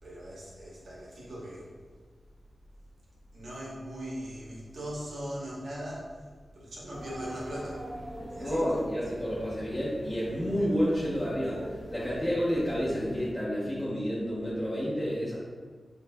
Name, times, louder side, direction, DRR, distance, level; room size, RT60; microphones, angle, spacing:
voice 1, 0.0-1.7 3.3-6.1 6.5-7.8 8.3-8.6, equal, 85° right, -7 dB, 1.1 m, -39 dB
sound 1, 6.9-13.3, equal, 20° right, 0.7 m, -43 dB
voice 2, 8.4-15.3, equal, 5° left, -11 dB, 0.9 m, -30 dB
6.6 x 2.4 x 2.2 m, 1.5 s
wide cardioid pair, 110°, 0 cm